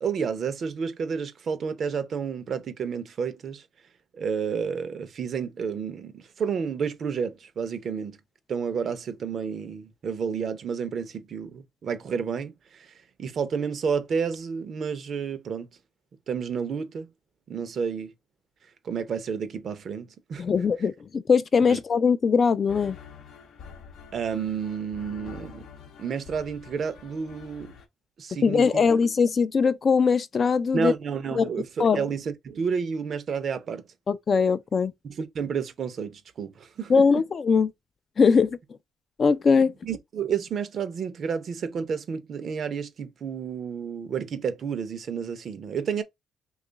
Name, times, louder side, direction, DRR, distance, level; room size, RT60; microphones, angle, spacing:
voice 1, 0.0-3.6 4.1-8.2 8.5-12.9 13.2-15.7 16.3-17.1 17.5-18.1 18.8-20.4 21.7-21.8 24.1-25.6 26.0-27.7 28.2-28.7 30.7-33.8 35.0-37.1 39.8-46.0, right 6 dB, 55° right, 0.6 m, -30 dB
voice 2, 20.4-23.0 28.4-30.9 31.4-31.5 31.8-32.0 34.1-34.9 36.9-37.7 38.2-38.6 39.2-39.7, left 5 dB, 45° left, 0.3 m, -21 dB
sound 1, 22.7-27.9, left 6 dB, 75° left, 0.7 m, -46 dB
2.9 x 2.4 x 3.9 m
cardioid pair, 90°, 0 cm